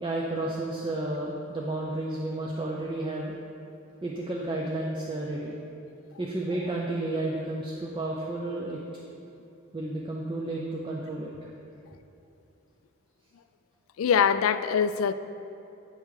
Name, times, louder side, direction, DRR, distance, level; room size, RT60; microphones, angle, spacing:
voice 1, 0.0-3.3 4.0-5.5 6.2-8.8 9.7-11.5, right 2 dB, 25° right, -3 dB, 0.6 m, -32 dB
voice 2, 14.0-15.1, left 7 dB, 75° left, 13 dB, 0.3 m, -23 dB
9.1 x 5.4 x 4.8 m, 2.8 s
head